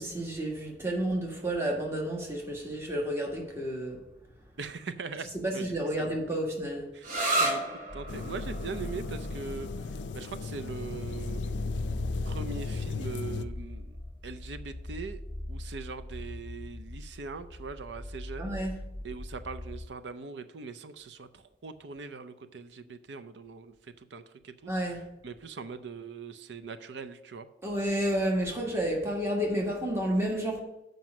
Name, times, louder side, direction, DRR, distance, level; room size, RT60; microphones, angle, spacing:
voice 1, 0.0-4.0 5.4-6.8 18.4-18.8 24.7-25.0 27.6-30.6, right 1 dB, 15° right, 1.6 m, -30 dB
voice 2, 4.6-5.3 5.5-6.2 6.9-7.0 7.4-11.5 12.2-14.0 14.2-15.2 15.5-18.6 19.0-24.7 25.2-27.5, right 4 dB, 75° right, 0.5 m, -41 dB
sound 1, 7.0-14.4, right 1 dB, 50° right, 1.3 m, -36 dB
sound 2, 7.9-19.9, left 1 dB, 10° left, 0.8 m, -40 dB
sound 3, 8.1-13.4, left 5 dB, 90° left, 0.4 m, -37 dB
7.5 x 5.3 x 6.0 m
head